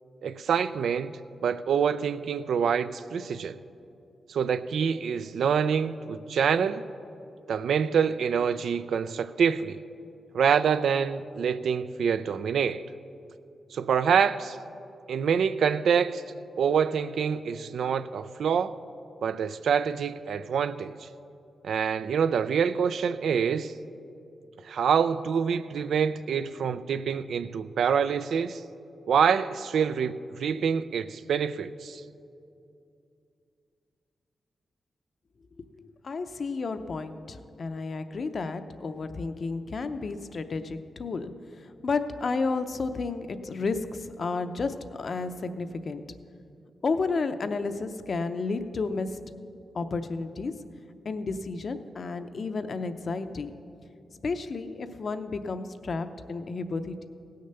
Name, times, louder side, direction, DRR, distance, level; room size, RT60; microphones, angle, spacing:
voice 1, 0.2-3.6 4.3-6.9 7.5-9.8 10.3-12.8 13.7-14.6 15.1-16.2 16.6-18.7 19.2-21.1 21.6-23.7 24.7-28.6 29.1-32.0, right 7 dB, 80° right, 13 dB, 0.4 m, -26 dB
voice 2, 35.8-46.0 46.8-49.2 49.7-50.5 51.0-53.5 54.2-57.0, left 4 dB, 50° left, 10 dB, 0.6 m, -32 dB
17.0 x 6.6 x 6.7 m, 2.6 s
wide cardioid pair, 120°, 0 cm